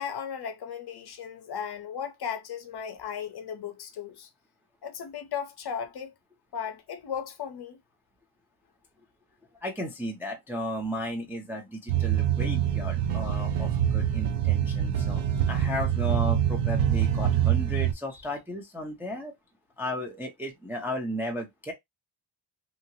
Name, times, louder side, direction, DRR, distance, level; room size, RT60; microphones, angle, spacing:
voice 1, 0.0-4.3 4.8-6.1 6.5-7.8, left 7 dB, 50° left, 0.7 m, -36 dB
voice 2, 9.6-15.2 15.5-19.3 19.8-21.7, equal, 5° right, 0.4 m, -34 dB
sound 1, 11.9-17.9, right 10 dB, 90° right, 0.7 m, -25 dB
2.9 x 2.8 x 2.7 m
wide cardioid pair, 175°, 49 cm